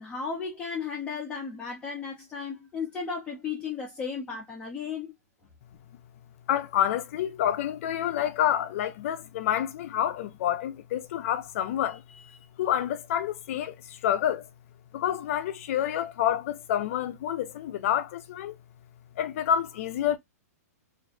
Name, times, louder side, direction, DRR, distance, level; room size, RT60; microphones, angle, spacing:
voice 1, 0.0-5.1, left 5 dB, 15° left, 0.7 m, -35 dB
voice 2, 6.5-12.3 12.6-14.5 14.9-18.6 19.2-20.2, left 10 dB, 55° left, 0.5 m, -28 dB
2.5 x 2.1 x 2.4 m
hypercardioid pair, 145°, 9 cm